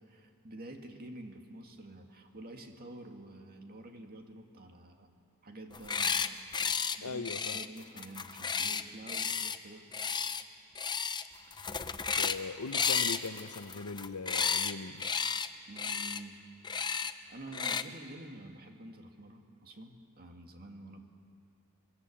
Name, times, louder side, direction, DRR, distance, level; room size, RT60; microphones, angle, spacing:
voice 1, 0.0-5.1 5.4-6.4 7.0-9.8 15.7-16.4 16.8-17.0 17.3-21.0, right 1 dB, 45° right, 4 dB, 2.2 m, -48 dB
sound 1, 5.7-6.3 6.5-7.0 7.3-9.6 9.9-10.4 10.8-11.2 11.5-12.4 12.7-14.7 15.0-15.5 15.8-16.2 16.6-17.1 17.5-17.8, left 6 dB, 20° left, 0.7 m, -32 dB
voice 2, 7.0-7.6 11.8-15.1, left 4 dB, 85° left, 11 dB, 0.9 m, -40 dB
23.0 x 21.5 x 8.5 m, 2.4 s
head